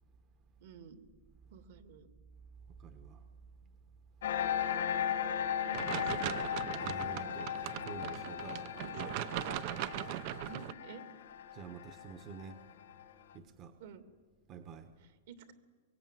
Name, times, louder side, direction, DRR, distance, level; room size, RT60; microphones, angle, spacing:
voice 1, 0.6-1.0 1.5-2.1 5.1-6.2 9.0-9.3 10.4-11.1 13.8-14.0 15.0-15.5, right 5 dB, 60° right, 9 dB, 2.6 m, -52 dB
voice 2, 2.8-3.3 4.6-4.7 6.8-8.8 11.5-12.6 13.3-13.8 14.5-14.9, right 6 dB, 30° right, 9 dB, 1.3 m, -48 dB
sound 1, 4.2-13.2, left 9 dB, 75° left, 2.0 m, -37 dB
sound 2, 5.7-10.7, right 13 dB, 45° right, 0.8 m, -39 dB
23.5 x 23.0 x 9.3 m, 1.5 s
supercardioid pair, 155°, 0 cm